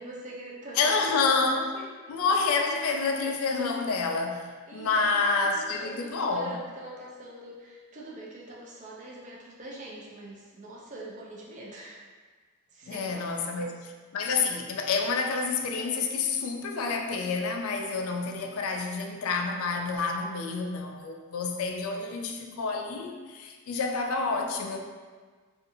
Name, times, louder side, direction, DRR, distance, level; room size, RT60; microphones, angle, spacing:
voice 1, 0.0-1.1 1.7-1.9 4.7-12.0 12.7-13.7, right 1 dB, 35° right, -4 dB, 0.4 m, -43 dB
voice 2, 0.8-1.7 2.1-6.6 12.9-24.8, left 4 dB, 70° left, 3 dB, 0.3 m, -28 dB
2.6 x 2.4 x 2.6 m, 1.5 s
head